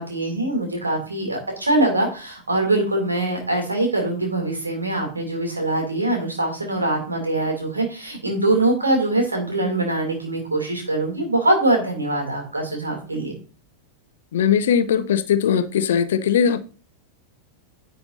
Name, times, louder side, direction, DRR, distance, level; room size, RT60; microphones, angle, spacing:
voice 1, 0.0-13.3, right 2 dB, 80° right, 2 dB, 2.6 m, -23 dB
voice 2, 14.3-16.6, left 8 dB, 60° left, 14 dB, 0.6 m, -19 dB
10.0 x 6.9 x 2.6 m, 0.38 s
figure-of-eight pair, 90°, 0 cm